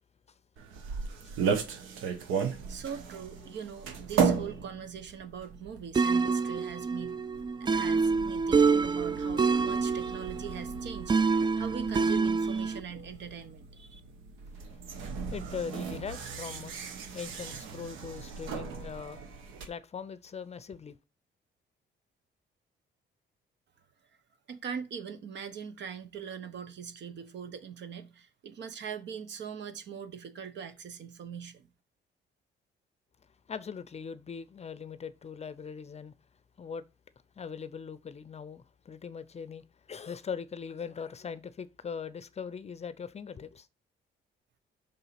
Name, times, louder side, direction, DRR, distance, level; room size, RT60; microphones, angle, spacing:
sound 1, 0.6-19.7, right 6 dB, 90° right, 1.1 m, -36 dB
voice 1, 2.7-7.2 7.6-14.0 24.5-31.7, right 7 dB, 65° right, 1.0 m, -42 dB
sound 2, 5.9-12.8, right 4 dB, 25° right, 0.3 m, -27 dB
voice 2, 15.3-16.8 17.1-19.2 19.7-21.0 33.5-36.1 36.6-36.8 37.4-43.7, left 6 dB, 35° left, 0.5 m, -40 dB
5.5 x 4.0 x 5.8 m
cardioid pair, 90°, 20 cm